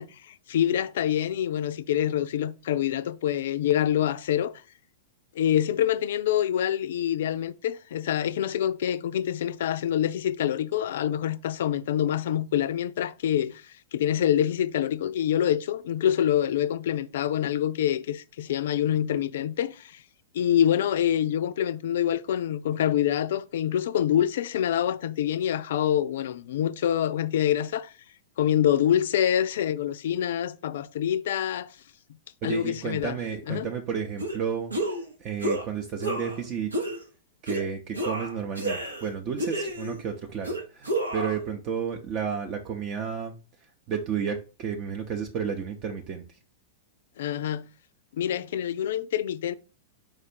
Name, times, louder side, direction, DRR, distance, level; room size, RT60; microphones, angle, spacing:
voice 1, 0.0-4.5 5.4-20.0 20.3-27.9 28.4-31.8 32.4-33.2 33.5-33.7 47.2-47.6 48.1-49.6, left 10 dB, 60° left, 0.3 m, -26 dB
voice 2, 32.4-34.7 35.2-36.7 37.4-43.4 43.9-46.2, right 7 dB, 35° right, 0.6 m, -32 dB
sound 1, 34.2-34.4 34.7-35.1 35.4-35.7 36.0-36.4 36.7-37.0 37.5-37.6 37.9-39.1 39.4-40.0 40.4-41.4, right 1 dB, 90° right, 0.8 m, -30 dB
4.5 x 2.4 x 4.3 m
figure-of-eight pair, 100°, 0 cm